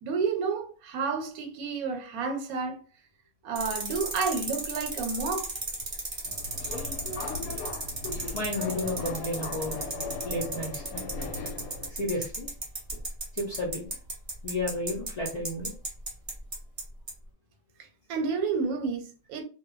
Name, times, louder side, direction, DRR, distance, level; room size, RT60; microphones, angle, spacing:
voice 1, 0.0-2.8 3.4-5.5 17.8-19.4, right 5 dB, 85° right, 1.1 m, -30 dB
sound 1, 3.6-16.8 17.1-17.2, right 2 dB, 35° right, 0.7 m, -33 dB
Subway metro underground, 6.3-11.9, left 3 dB, 85° left, 1.0 m, -37 dB
voice 2, 8.3-9.9 10.2-11.1 11.9-12.5 13.3-13.9 14.4-15.7, left 1 dB, 65° left, 0.4 m, -32 dB
2.2 x 2.2 x 3.0 m
omnidirectional pair, 1.5 m